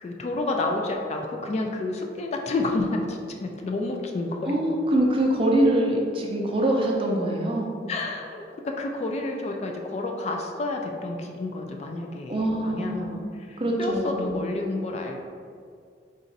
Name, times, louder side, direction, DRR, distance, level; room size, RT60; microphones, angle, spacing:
voice 1, 0.0-4.6 7.9-15.3, left 2 dB, 40° left, 2 dB, 0.3 m, -30 dB
voice 2, 4.5-7.7 12.3-13.3 13.6-14.3, right 1 dB, 30° right, -1 dB, 0.5 m, -24 dB
4.0 x 2.5 x 3.9 m, 2.2 s
head